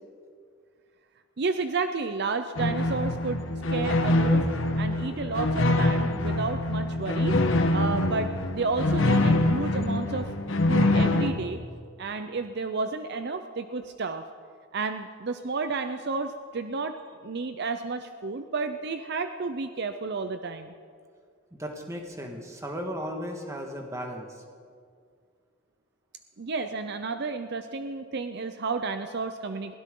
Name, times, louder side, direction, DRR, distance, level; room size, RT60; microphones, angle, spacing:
voice 1, 1.4-3.4 3.7-4.5 4.8-7.4 7.7-10.3 10.7-11.6 12.0-14.2 14.7-17.0 17.2-20.7 26.4-29.7, right 4 dB, 55° right, 8 dB, 0.6 m, -31 dB
sound 1, 2.6-11.3, left 1 dB, 65° left, 1.2 m, -24 dB
voice 2, 21.5-24.4, equal, 15° right, 2 dB, 1.6 m, -36 dB
22.0 x 16.5 x 3.8 m, 2.1 s
head